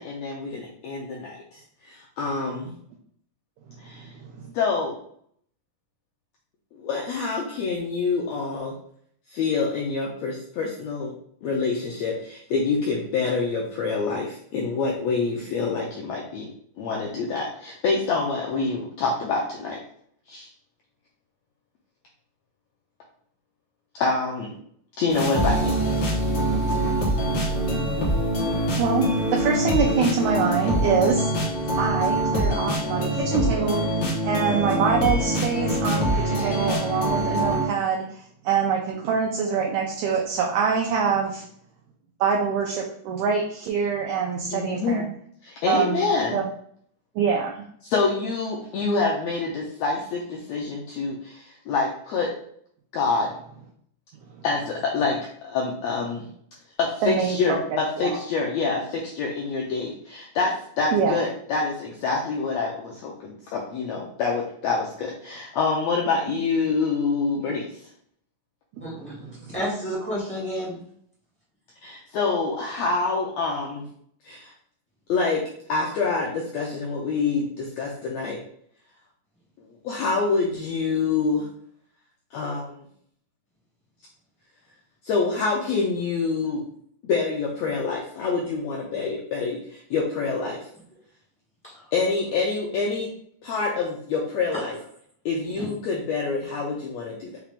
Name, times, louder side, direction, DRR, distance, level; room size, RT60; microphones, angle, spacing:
voice 1, 0.0-2.7 3.8-4.1 4.5-4.9 6.8-8.7 9.3-11.1 11.4-16.5 16.8-19.8 20.3-20.5 23.9-24.5 25.0-25.8 44.5-45.1 45.4-46.4 47.8-52.3 52.9-53.3 54.4-56.3 56.8-67.8 71.8-73.8 74.2-74.5 75.1-75.4 75.7-78.4 79.6-81.5 82.3-82.7 85.0-86.6 87.0-90.7 91.9-93.1 93.4-94.8 95.2-97.4, left 4 dB, 85° left, -2 dB, 1.5 m, -26 dB
voice 2, 4.0-4.3 28.8-31.3 31.8-34.0 34.2-41.4 42.2-45.0 45.7-46.0 46.3-46.4 47.2-47.6 57.0-58.2 60.9-61.2 68.8-69.6, right 6 dB, 80° right, 0 dB, 1.8 m, -25 dB
sound 1, 25.1-37.7, right 1 dB, 60° left, 1.2 m, -24 dB
voice 3, 68.8-70.8 95.6-95.7, equal, 15° left, -7 dB, 0.4 m, -31 dB
5.8 x 2.4 x 3.5 m, 0.63 s
omnidirectional pair, 3.8 m